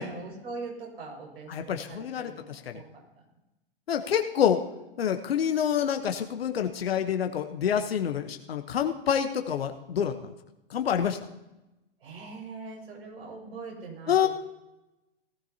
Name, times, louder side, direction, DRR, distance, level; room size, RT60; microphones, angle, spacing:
voice 1, 0.0-3.0 12.0-14.3, right 4 dB, 75° right, 0 dB, 5.7 m, -42 dB
voice 2, 1.5-2.8 3.9-4.6 5.0-10.3 10.7-11.2 14.1-14.3, left 8 dB, 75° left, 6 dB, 1.0 m, -27 dB
18.0 x 14.0 x 2.8 m, 0.98 s
hypercardioid pair, 105°, 30 cm